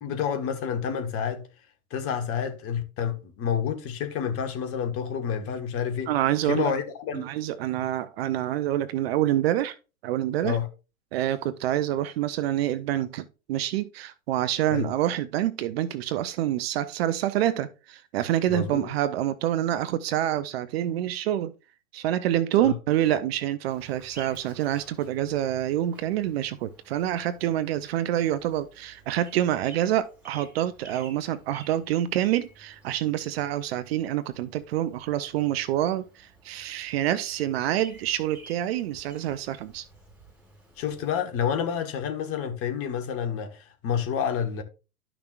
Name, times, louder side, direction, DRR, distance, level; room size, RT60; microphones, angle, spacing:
voice 1, 0.0-1.4 1.9-6.1 6.4-7.3 10.4-10.7 14.7-14.9 18.5-18.9 22.6-22.7 40.8-44.6, left 8 dB, 30° left, 1.5 m, -29 dB
voice 2, 6.1-6.7 7.1-9.8 10.0-10.6 11.1-21.5 21.9-39.8, right 12 dB, 45° right, 0.6 m, -27 dB
Bird vocalization bird call bird song, 23.7-41.1, right 3 dB, 5° right, 5.2 m, -53 dB
12.0 x 6.0 x 2.4 m
figure-of-eight pair, 105°, 43 cm